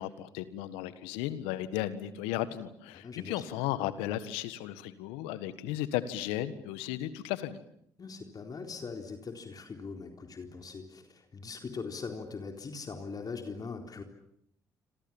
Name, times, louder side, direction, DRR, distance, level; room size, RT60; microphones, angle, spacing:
voice 1, 0.0-7.6, left 13 dB, 80° left, 14 dB, 1.6 m, -35 dB
voice 2, 2.9-3.5 8.0-14.0, left 4 dB, 40° left, 4 dB, 4.0 m, -41 dB
27.0 x 26.5 x 7.3 m, 0.70 s
hypercardioid pair, 50°, 9 cm